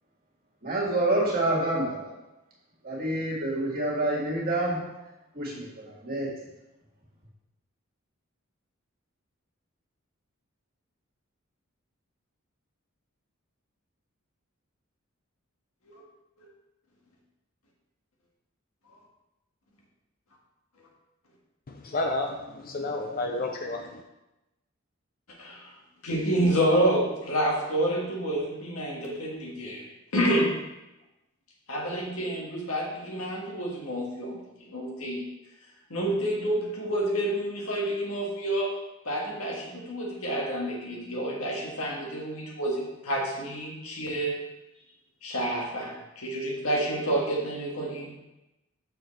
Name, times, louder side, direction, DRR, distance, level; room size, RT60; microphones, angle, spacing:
voice 1, 0.6-2.1 2.8-4.9 5.3-6.4, right 1 dB, 45° right, -4 dB, 2.0 m, -27 dB
voice 2, 21.7-24.0, left 2 dB, 45° left, 3 dB, 0.5 m, -31 dB
voice 3, 25.4-25.7 26.0-29.8 30.1-30.5 31.7-35.3 35.9-38.7 39.1-44.4 45.2-48.1, right 1 dB, 80° left, -2 dB, 1.8 m, -28 dB
6.6 x 6.5 x 3.3 m, 0.96 s
head